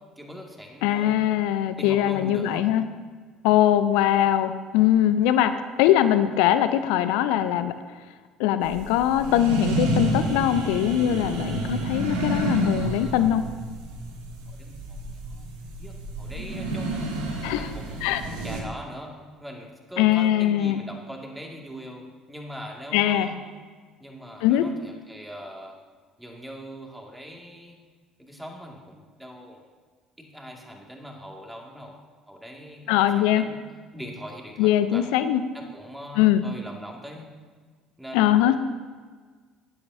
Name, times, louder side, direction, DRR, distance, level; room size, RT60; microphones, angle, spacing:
voice 1, 0.2-1.2 1.7-2.7 14.5-15.5 15.8-17.1 17.6-23.4 24.0-25.8 26.2-27.8 28.2-29.6 30.2-32.0 32.3-33.6 33.9-35.1 35.5-37.3 38.0-38.6, equal, 5° right, 0 dB, 2.2 m, -41 dB
voice 2, 0.8-2.8 3.4-7.7 8.4-13.4 17.4-17.7 18.0-18.2 20.0-20.8 22.9-23.3 24.4-24.6 32.9-33.4 34.6-35.4 36.2-36.4 38.1-38.5, left 11 dB, 65° left, 11 dB, 0.6 m, -21 dB
sound 1, 8.6-18.6, right 2 dB, 70° right, 1.4 m, -30 dB
17.0 x 11.0 x 2.7 m, 1.5 s
figure-of-eight pair, 55°, 0 cm